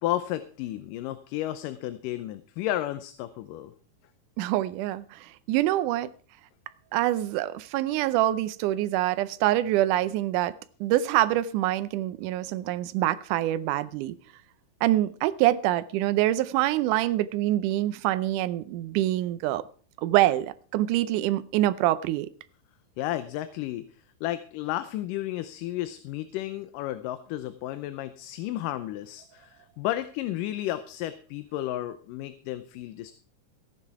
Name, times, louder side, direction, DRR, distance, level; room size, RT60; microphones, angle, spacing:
voice 1, 0.0-3.7 23.0-23.9 24.2-33.1, left 14 dB, 80° left, 2.3 m, -32 dB
voice 2, 4.4-6.1 6.9-10.5 10.8-14.2 14.8-19.6 20.0-22.3, right 14 dB, 75° right, 2.0 m, -25 dB
15.0 x 9.9 x 4.7 m
omnidirectional pair, 3.9 m